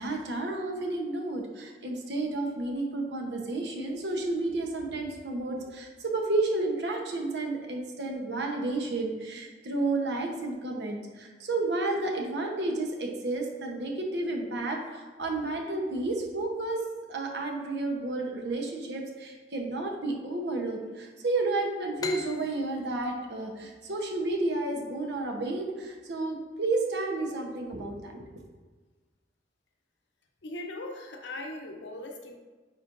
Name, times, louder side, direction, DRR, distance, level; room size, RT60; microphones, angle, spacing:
voice 1, 0.0-16.8 17.1-28.1, right 2 dB, 80° right, 1 dB, 0.9 m, -31 dB
sound 1, 22.0-25.4, left 3 dB, 20° left, 0.4 m, -42 dB
voice 2, 30.4-32.4, left 2 dB, 90° left, 3 dB, 0.8 m, -39 dB
9.1 x 4.4 x 2.6 m, 1.3 s
head